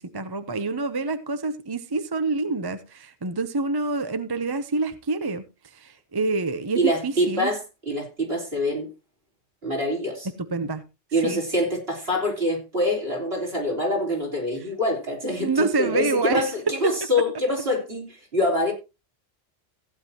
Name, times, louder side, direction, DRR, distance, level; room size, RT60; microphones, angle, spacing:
voice 1, 0.0-5.4 5.7-7.5 10.5-10.8 11.2-11.4 15.4-16.4 16.8-16.9, right 3 dB, 25° right, 0.6 m, -27 dB
voice 2, 6.7-8.9 9.6-10.3 11.1-18.7, left 1 dB, 55° right, 4.2 m, -25 dB
15.5 x 9.5 x 2.9 m
omnidirectional pair, 1.2 m